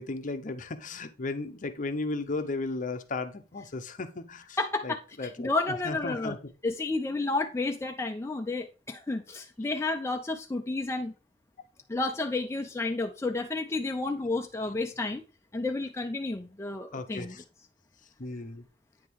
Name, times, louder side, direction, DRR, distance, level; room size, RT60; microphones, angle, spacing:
voice 1, 0.0-4.6 4.8-6.4 16.9-17.4 18.2-18.7, left 3 dB, 45° left, 0.8 m, -35 dB
voice 2, 4.6-6.3 6.6-11.1 11.9-15.2 15.5-17.3, left 3 dB, 15° left, 0.4 m, -31 dB
9.3 x 3.7 x 4.7 m
head